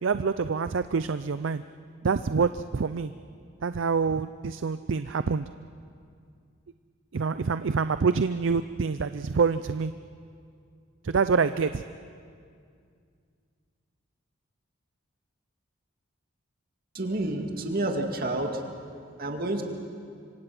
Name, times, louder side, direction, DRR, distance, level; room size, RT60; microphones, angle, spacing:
voice 1, 0.0-1.6 2.0-3.1 3.6-5.5 7.1-9.9 11.0-11.8, right 5 dB, 65° right, 12 dB, 0.5 m, -26 dB
voice 2, 16.9-18.5 19.2-19.6, right 2 dB, 45° right, 3 dB, 2.3 m, -29 dB
26.0 x 25.0 x 6.0 m, 2.3 s
head